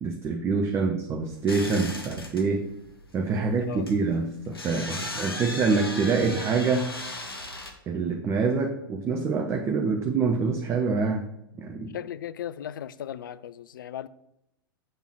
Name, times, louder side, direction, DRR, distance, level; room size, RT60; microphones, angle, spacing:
voice 1, 0.0-2.7 3.1-6.9 7.9-11.3 11.6-12.0, right 4 dB, 20° right, 0.6 m, -26 dB
sound 1, 1.3-7.7, left 2 dB, 80° left, 1.3 m, -37 dB
voice 2, 11.9-14.1, left 10 dB, 60° left, 0.4 m, -36 dB
7.8 x 3.5 x 6.0 m
figure-of-eight pair, 100°, 12 cm